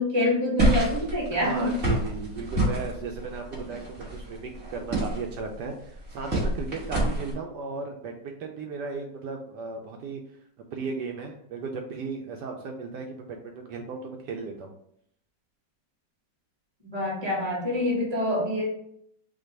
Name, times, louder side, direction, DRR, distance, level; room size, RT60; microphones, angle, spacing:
voice 1, 0.0-1.8 16.9-18.6, left 1 dB, 15° right, -4 dB, 1.3 m, -26 dB
sound 1, 0.6-7.3, right 1 dB, 40° right, 1.7 m, -28 dB
voice 2, 1.3-10.2 10.7-14.7, right 4 dB, 75° right, 2 dB, 1.2 m, -36 dB
4.9 x 2.3 x 4.5 m, 0.68 s
omnidirectional pair, 1.9 m